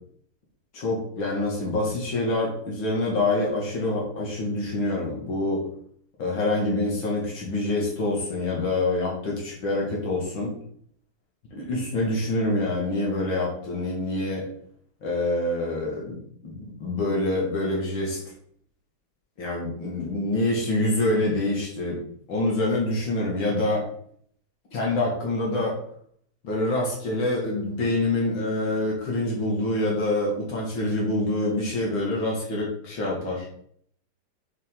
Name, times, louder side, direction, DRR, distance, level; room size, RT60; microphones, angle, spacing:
voice 1, 0.7-5.6 6.2-10.5 11.5-14.4 15.0-16.2 16.4-18.2 19.4-22.0 22.3-23.8 24.7-25.8 26.4-33.5, left 2 dB, 65° left, -3 dB, 2.3 m, -26 dB
6.0 x 4.8 x 3.7 m, 0.64 s
omnidirectional pair, 2.4 m